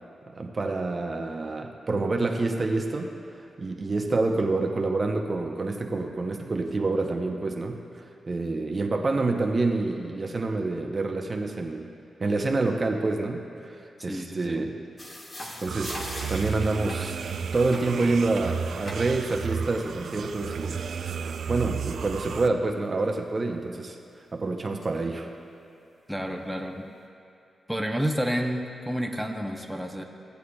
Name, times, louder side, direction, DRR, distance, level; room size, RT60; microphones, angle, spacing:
voice 1, 0.3-3.1 3.6-11.9 12.2-13.4 13.7-14.7 15.6-17.2 17.5-20.8 21.5-24.0 24.3-25.3, right 3 dB, 40° right, 2 dB, 0.7 m, -27 dB
voice 2, 14.0-14.6 26.1-26.9 27.7-30.0, equal, ahead, 1 dB, 0.8 m, -30 dB
sound 1, 15.0-18.2 18.9-19.3 23.0-23.1 23.9-24.0 24.8-24.9 26.2-26.4, left 1 dB, 35° left, 1.4 m, -40 dB
sound 2, 15.7-22.5, right 6 dB, 75° right, 0.3 m, -33 dB
16.0 x 8.2 x 2.3 m, 2.7 s
cardioid pair, 65°, 0 cm